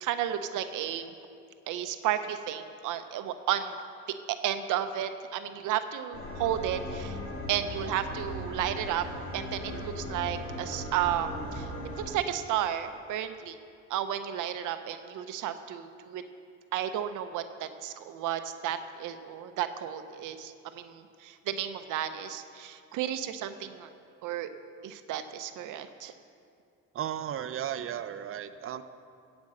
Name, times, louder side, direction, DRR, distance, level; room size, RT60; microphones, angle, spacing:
voice 1, 0.0-1.1 1.7-3.8 4.3-7.2 7.5-9.0 9.3-11.7 12.0-13.6 13.9-16.2 16.7-23.9 24.2-24.5 24.8-26.1, right 10 dB, 90° right, 9 dB, 0.7 m, -33 dB
sound 1, 6.1-12.1, left 1 dB, 45° left, 2.2 m, -38 dB
voice 2, 26.9-28.8, right 10 dB, 45° right, 10 dB, 0.6 m, -35 dB
15.0 x 5.3 x 7.6 m, 2.4 s
cardioid pair, 90°, 30 cm